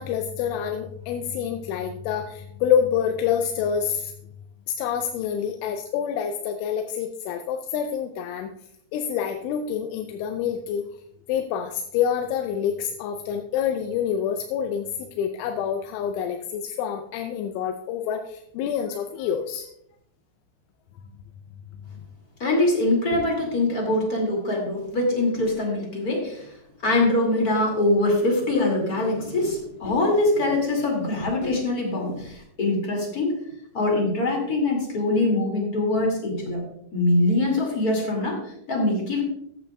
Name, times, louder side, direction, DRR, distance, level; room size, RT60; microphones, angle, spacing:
voice 1, 0.0-4.1 4.7-8.5 8.9-10.8 11.3-14.9 15.2-19.7, left 8 dB, 90° left, 5 dB, 3.1 m, -27 dB
voice 2, 22.4-26.4 26.8-33.4 33.7-36.6 36.9-38.4 38.7-39.2, left 2 dB, 35° left, 0 dB, 1.5 m, -23 dB
14.0 x 8.6 x 2.3 m, 0.72 s
omnidirectional pair, 5.4 m